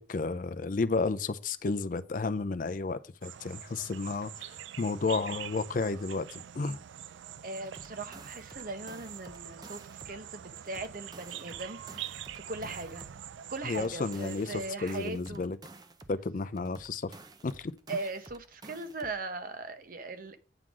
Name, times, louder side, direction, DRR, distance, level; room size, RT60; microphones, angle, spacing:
voice 1, 0.0-6.8 13.6-15.6 16.1-17.1 17.4-17.7, left 3 dB, 45° left, 0.4 m, -32 dB
sound 1, 3.2-14.8, right 10 dB, 80° right, 0.4 m, -45 dB
voice 2, 7.4-12.2 12.5-13.1 13.5-15.5 17.9-20.4, right 3 dB, 50° right, 0.9 m, -39 dB
sound 2, 7.6-10.2 10.6-13.2 13.6-16.2 16.6-19.2, right 2 dB, 20° right, 0.6 m, -52 dB
8.8 x 3.8 x 6.1 m
head